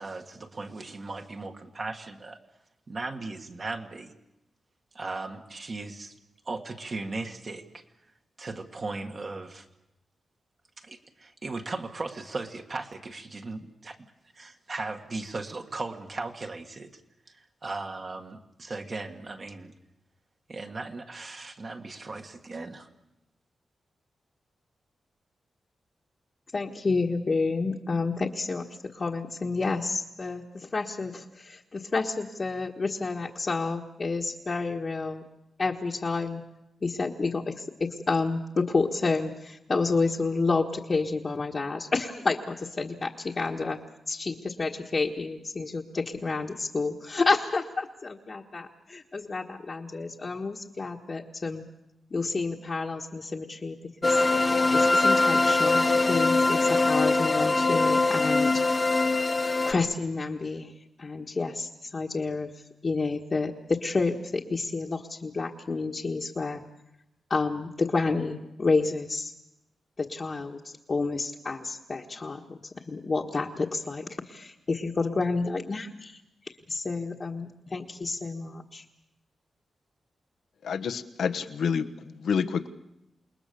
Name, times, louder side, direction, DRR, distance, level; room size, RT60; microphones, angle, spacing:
voice 1, 0.0-2.4 2.9-4.1 4.9-6.2 6.5-7.8 8.4-9.7 10.8-14.0 14.3-17.0 17.3-19.7 20.5-22.9, right 3 dB, 40° right, 3 dB, 1.8 m, -37 dB
voice 2, 26.5-35.2 35.6-36.4 36.8-43.8 44.1-51.6 52.1-53.8 54.0-59.0 59.6-60.7 61.0-62.5 62.8-66.6 67.3-69.3 70.0-72.6 72.9-76.2 76.7-78.8, left 3 dB, 35° left, -2 dB, 1.5 m, -30 dB
sound 1, 54.0-59.7, left 3 dB, 20° left, 1.0 m, -22 dB
voice 3, 80.6-82.7, left 6 dB, 80° left, 8 dB, 1.2 m, -28 dB
28.0 x 20.5 x 6.9 m, 0.88 s
wide cardioid pair, 130°, 0 cm